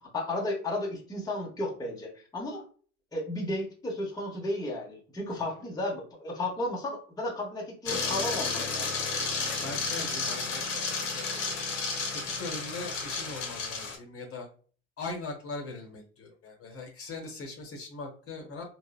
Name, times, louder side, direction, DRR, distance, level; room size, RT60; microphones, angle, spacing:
voice 1, 0.0-2.6 3.1-8.9, left 1 dB, 10° left, -2 dB, 0.9 m, -33 dB
sound 1, 7.9-14.0, left 4 dB, 60° left, 1.0 m, -32 dB
voice 2, 9.6-11.4 12.2-14.5 15.0-18.6, left 3 dB, 35° left, 0 dB, 1.0 m, -40 dB
3.8 x 2.1 x 2.3 m, 0.42 s
figure-of-eight pair, 70°, 38 cm